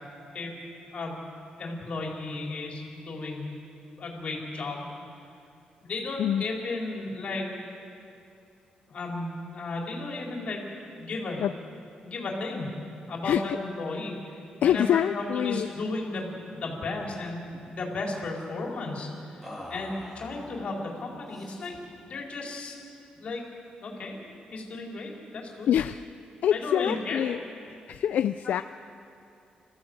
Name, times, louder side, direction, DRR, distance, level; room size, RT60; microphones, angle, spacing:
voice 1, 1.6-3.5 4.0-4.9 5.8-7.5 8.9-10.6 11.0-11.4 12.0-12.7 13.1-21.7 22.0-22.8 23.1-23.4 23.8-25.7 26.5-27.3, left 2 dB, 50° left, -1 dB, 4.1 m, -34 dB
voice 2, 13.2-13.6 14.6-15.7 25.7-26.0 26.4-27.4 27.9-28.6, left 10 dB, 70° left, 11 dB, 0.4 m, -25 dB
sound 1, 16.1-16.3 16.5-16.8 17.1-17.8 19.4-20.7 21.3-21.9, left 1 dB, 5° right, 3.4 m, -45 dB
26.5 x 15.0 x 7.9 m, 2.6 s
wide cardioid pair, 155°, 3 cm